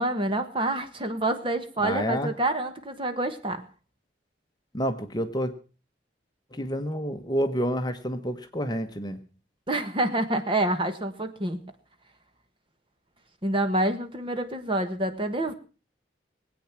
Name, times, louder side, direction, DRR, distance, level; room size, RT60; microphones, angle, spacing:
voice 1, 0.0-3.6 9.7-11.6 13.4-15.5, right 1 dB, 30° right, 8 dB, 1.4 m, -27 dB
voice 2, 1.8-2.3 4.7-5.5 6.5-9.2, equal, 25° left, 8 dB, 1.1 m, -29 dB
21.0 x 8.7 x 5.9 m, 0.36 s
head